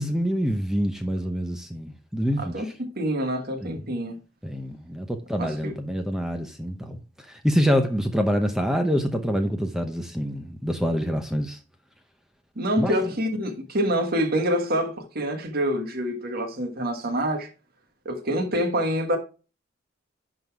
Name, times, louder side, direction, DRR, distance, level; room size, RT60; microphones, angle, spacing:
voice 1, 0.0-2.6 3.6-3.8 4.4-7.0 7.3-11.6 12.8-13.1, equal, 5° right, 0.7 m, -26 dB
voice 2, 2.4-4.2 5.4-5.7 12.5-17.5 18.0-19.2, equal, 50° right, 1.5 m, -26 dB
11.0 x 3.9 x 4.6 m
head